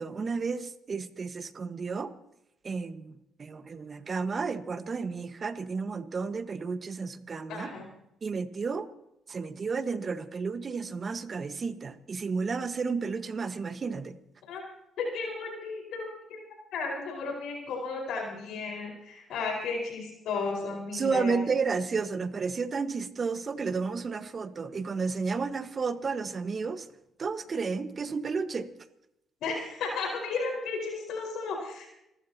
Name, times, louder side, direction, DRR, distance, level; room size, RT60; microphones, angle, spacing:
voice 1, 0.0-2.1 2.6-7.7 8.2-8.9 9.3-14.2 20.9-26.9 27.2-28.7, right 4 dB, 45° right, 10 dB, 1.5 m, -32 dB
voice 2, 7.5-7.9 14.5-14.6 15.0-16.4 16.7-21.4 29.4-31.9, left 4 dB, 75° left, 0 dB, 5.0 m, -34 dB
29.0 x 14.0 x 2.9 m, 0.82 s
supercardioid pair, 60°, 0 cm